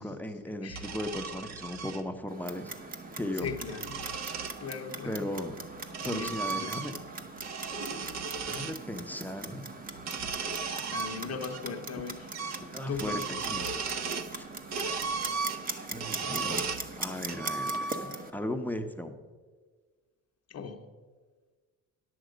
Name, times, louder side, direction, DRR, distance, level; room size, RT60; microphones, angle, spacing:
voice 1, 0.0-2.7 3.2-3.5 5.1-5.6 6.0-6.9 8.4-9.7 12.7-14.0 14.3-14.5 15.9-19.2, left 1 dB, 5° left, 5 dB, 0.7 m, -37 dB
voice 2, 0.6-0.9 3.4-4.0 4.6-5.3 6.0-6.9 10.4-12.3 12.9-13.3 20.5-20.9, left 6 dB, 45° left, 5 dB, 0.8 m, -39 dB
sound 1, 0.7-2.0 3.2-4.6 5.5-7.1 7.4-8.8 9.9-11.6 11.9-12.0 12.3-12.7 12.9-14.3 14.7-16.9 17.3-18.2, right 4 dB, 50° right, 0.7 m, -35 dB
Clock, 2.3-18.3, right 3 dB, 25° right, 0.9 m, -41 dB
10.0 x 7.8 x 5.0 m, 1.4 s
cardioid pair, 100°, 35 cm